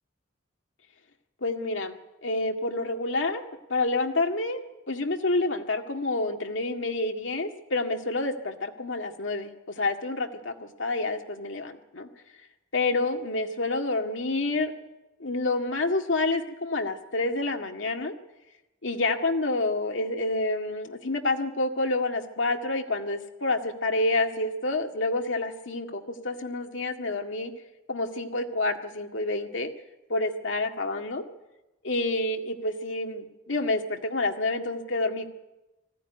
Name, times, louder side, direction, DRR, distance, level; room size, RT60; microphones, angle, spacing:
voice 1, 1.4-3.4 3.7-4.6 4.9-12.1 12.7-14.7 15.2-18.1 18.8-27.5 27.9-29.7 30.1-31.2 31.8-35.3, left 2 dB, 90° left, 4 dB, 2.0 m, -28 dB
20.0 x 15.5 x 9.8 m, 1.0 s
head